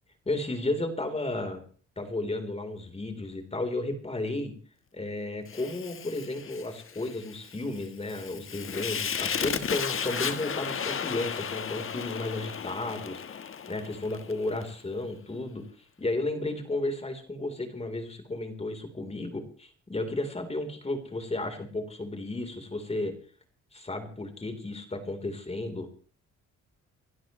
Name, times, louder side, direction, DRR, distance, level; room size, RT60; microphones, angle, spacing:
voice 1, 0.3-1.6 2.0-4.5 4.9-13.2 13.7-15.6 16.0-23.1 23.7-25.9, left 2 dB, 20° left, 6 dB, 3.8 m, -33 dB
Fire, 5.5-14.7, left 7 dB, 45° left, 1.4 m, -34 dB
29.0 x 11.5 x 3.2 m, 0.40 s
cardioid pair, 90°, 30 cm